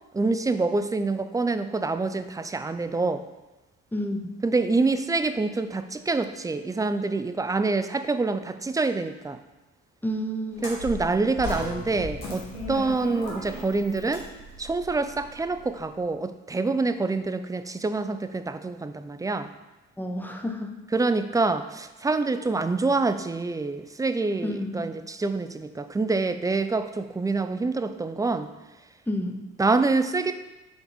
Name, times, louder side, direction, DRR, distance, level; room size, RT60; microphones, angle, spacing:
voice 1, 0.1-3.3 4.4-9.4 10.6-14.2 14.6-19.5 20.9-28.5 29.6-30.3, right 3 dB, 10° right, 10 dB, 0.4 m, -26 dB
voice 2, 10.0-10.6 20.0-20.8 24.4-24.8 29.1-29.4, equal, 5° left, 4 dB, 0.8 m, -30 dB
sound 1, 10.5-15.8, left 1 dB, 90° left, 1.7 m, -37 dB
4.9 x 4.1 x 5.1 m, 1.0 s
supercardioid pair, 70°, 30 cm